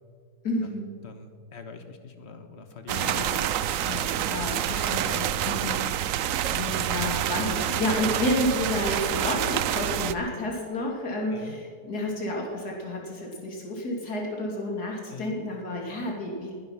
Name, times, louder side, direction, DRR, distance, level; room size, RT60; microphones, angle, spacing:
voice 1, 0.4-0.9 2.9-16.6, left 1 dB, 80° left, -1 dB, 3.5 m, -31 dB
voice 2, 1.0-3.3 11.3-11.6 15.1-15.4, left 4 dB, 45° left, 7 dB, 1.6 m, -44 dB
sound 1, 2.9-10.2, right 11 dB, 65° right, 0.9 m, -27 dB
20.5 x 11.0 x 5.7 m, 2.2 s
omnidirectional pair, 1.7 m